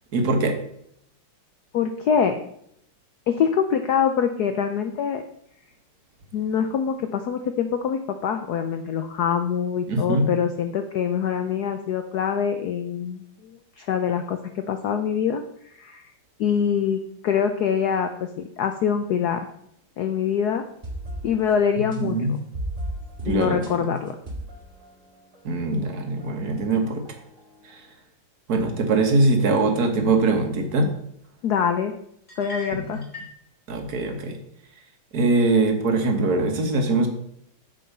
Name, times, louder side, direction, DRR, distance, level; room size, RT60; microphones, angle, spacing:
voice 1, 0.1-0.6 9.9-10.3 21.8-22.3 23.2-24.0 25.4-27.0 27.6-27.8 28.5-30.9 32.7-33.0 33.7-34.4 35.1-37.1, right 2 dB, 45° right, 4 dB, 1.8 m, -22 dB
voice 2, 1.7-2.4 3.3-5.2 6.3-13.2 13.8-16.0 16.4-18.3 18.6-19.5 20.0-20.6 21.2-22.2 23.2-24.2 31.4-31.9 32.4-33.0, left 7 dB, 75° left, 7 dB, 0.9 m, -24 dB
sound 1, 20.7-25.8 26.2-27.7, right 1 dB, 25° right, 2.0 m, -38 dB
sound 2, 32.3-33.4, left 1 dB, 20° left, 2.7 m, -38 dB
8.5 x 7.1 x 5.4 m, 0.72 s
omnidirectional pair, 2.4 m